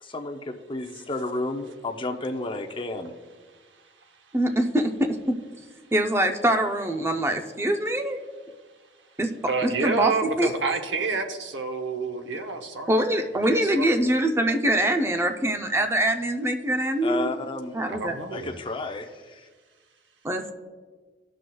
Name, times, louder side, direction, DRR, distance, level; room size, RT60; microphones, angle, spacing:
voice 1, 0.0-3.1 17.0-17.8 18.3-19.4, left 2 dB, 30° left, 4 dB, 0.6 m, -32 dB
voice 2, 4.3-5.4 5.9-8.2 9.2-9.3 9.6-10.1 10.4-10.5 12.9-17.3 17.7-18.2 20.2-20.5, right 1 dB, 15° right, 5 dB, 0.5 m, -24 dB
voice 3, 9.5-13.0 13.5-13.9 17.9-18.6, right 4 dB, 85° right, 6 dB, 0.8 m, -28 dB
17.0 x 6.2 x 2.3 m, 1.4 s
head